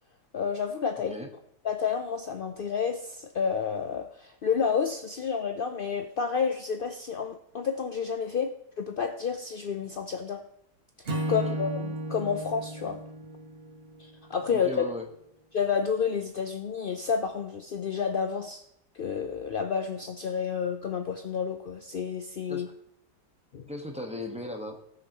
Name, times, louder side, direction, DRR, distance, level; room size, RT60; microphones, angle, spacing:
voice 1, 0.3-1.2 1.6-10.4 11.0-13.0 14.0-14.8 15.5-18.6 18.9-22.7 23.5-23.7, left 6 dB, 70° left, 6 dB, 0.5 m, -30 dB
Acoustic guitar / Strum, 11.1-14.4, right 1 dB, 35° right, 1.6 m, -34 dB
voice 2, 14.5-15.1 22.5-22.6 23.7-24.8, left 1 dB, 5° right, 3 dB, 1.1 m, -37 dB
19.5 x 6.6 x 3.0 m, 0.77 s
omnidirectional pair, 1.8 m